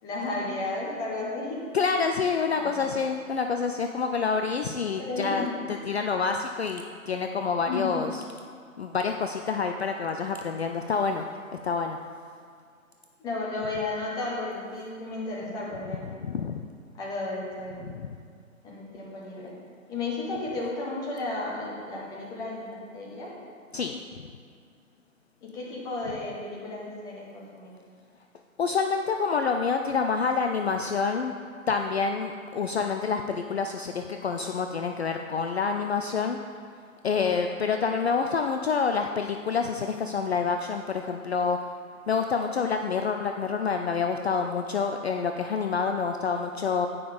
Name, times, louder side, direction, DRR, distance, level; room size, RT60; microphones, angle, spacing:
voice 1, 0.0-1.6 1.9-2.0 2.5-2.9 5.0-5.7 7.7-7.9 13.2-16.2 17.0-17.9 18.6-19.5 19.9-22.6 22.9-23.3 25.4-27.7, left 2 dB, 10° left, -5 dB, 1.0 m, -33 dB
voice 2, 1.7-8.1 8.8-11.2 11.5-12.0 16.1-16.6 17.9-18.2 23.7-24.3 28.6-31.3 31.7-36.4 37.0-41.6 42.1-46.9, left 5 dB, 50° left, 5 dB, 0.5 m, -27 dB
9.2 x 5.5 x 5.0 m, 2.2 s
figure-of-eight pair, 135°, 42 cm